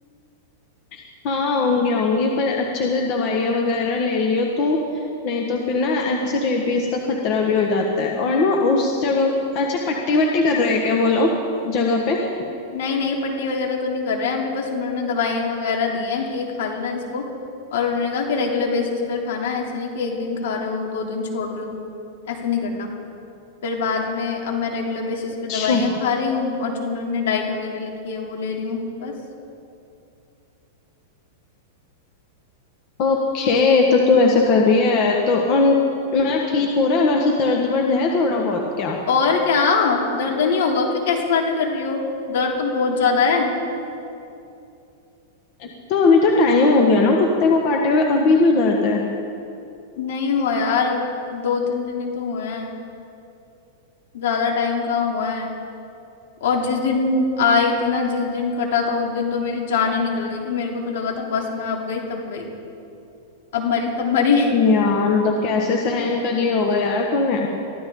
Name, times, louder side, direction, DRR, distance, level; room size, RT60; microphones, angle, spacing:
voice 1, 0.9-11.3 11.6-12.2 25.5-26.0 33.0-35.8 36.1-39.0 45.6-49.1 64.5-67.5, left 3 dB, 45° left, 1 dB, 1.6 m, -19 dB
voice 2, 12.7-17.2 17.7-21.8 22.3-22.9 23.6-29.1 39.1-42.0 42.3-43.5 50.0-52.8 54.1-55.5 56.4-62.5 63.5-64.5, left 5 dB, 70° left, 0 dB, 3.1 m, -23 dB
23.5 x 14.5 x 3.9 m, 2.7 s
supercardioid pair, 140°, 0 cm